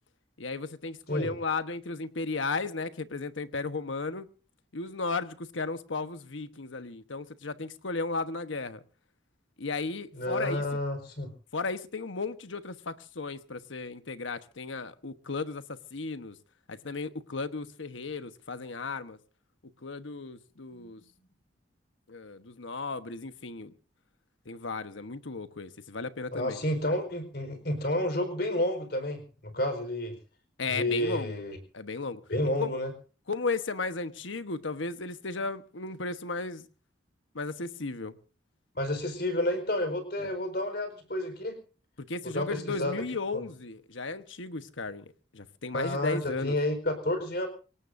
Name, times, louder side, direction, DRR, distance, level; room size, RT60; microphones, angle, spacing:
voice 1, 0.4-4.3 4.7-8.8 9.6-10.6 11.5-16.4 16.7-19.2 19.8-21.0 22.1-23.7 24.4-26.6 30.6-31.4 31.7-32.2 32.6-32.7 33.3-36.6 37.3-38.1 40.2-40.3 42.0-45.1 45.3-46.6, left 3 dB, 80° left, 1.2 m, -35 dB
voice 2, 10.1-11.3 20.7-21.0 26.3-30.1 30.7-31.6 32.3-32.9 38.7-41.6 42.2-42.9 43.3-43.4 45.7-47.5, left 1 dB, 55° left, 4.5 m, -30 dB
25.5 x 18.0 x 2.7 m
head